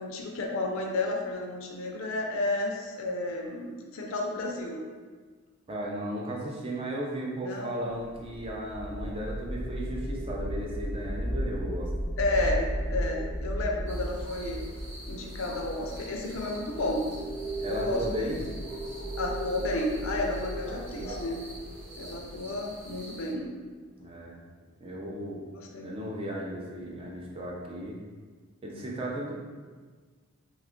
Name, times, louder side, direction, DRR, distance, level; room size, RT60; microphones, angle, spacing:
voice 1, 0.0-4.8 7.4-7.8 12.2-14.6 15.0-17.1 17.6-18.5 19.2-21.4 22.0-23.5 25.6-25.9, left 2 dB, 65° left, 0 dB, 0.5 m, -32 dB
voice 2, 5.7-11.9 17.6-18.4 24.0-24.4 24.8-25.4 25.8-28.0 28.6-29.3, right 1 dB, 25° right, -3 dB, 0.4 m, -35 dB
sound 1, 8.1-23.2, right 1 dB, ahead, 0.8 m, -35 dB
sound 2, 13.9-23.3, right 1 dB, 70° right, 0.9 m, -46 dB
2.9 x 2.4 x 3.5 m, 1.5 s
head